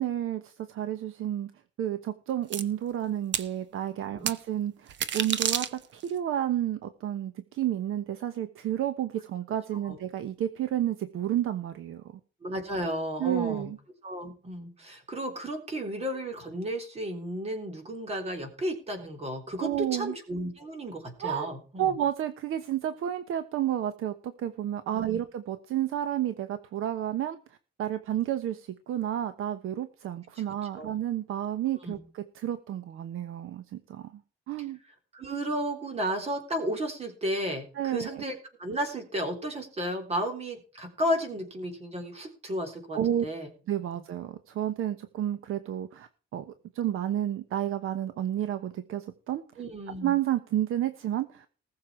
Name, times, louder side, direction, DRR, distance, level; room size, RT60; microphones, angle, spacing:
voice 1, 0.0-1.5 1.8-12.0 13.2-13.8 19.6-20.1 21.2-21.5 21.8-27.4 27.8-34.2 34.5-34.8 37.7-38.2 42.9-43.3 43.7-49.4 50.0-51.5, right 11 dB, 80° right, 11 dB, 1.1 m, -31 dB
sound 1, 2.5-2.6 3.3-3.5 4.3-4.4 4.9-6.1, right 9 dB, 60° right, 1.1 m, -29 dB
voice 2, 12.4-13.7 14.0-21.9 24.9-25.2 30.3-30.4 30.8-30.9 31.8-32.0 35.1-43.5 43.9-44.0 49.6-50.1, equal, 30° right, 5 dB, 3.5 m, -33 dB
19.5 x 6.9 x 4.4 m, 0.38 s
cardioid pair, 160°, 21 cm